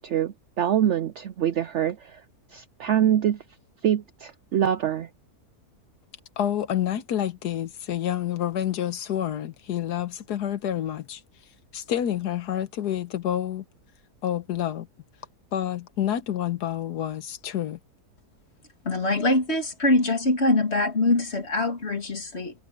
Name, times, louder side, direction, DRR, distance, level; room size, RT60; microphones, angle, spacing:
voice 1, 0.0-2.2 2.5-3.4 3.8-5.1, right 10 dB, 70° right, 0.7 m, -25 dB
voice 2, 6.4-11.2 11.7-13.6 14.2-14.9 15.5-17.8, left 10 dB, 85° left, 1.5 m, -28 dB
voice 3, 18.8-22.5, left 2 dB, 40° left, 2.8 m, -23 dB
omnidirectional pair, 1.7 m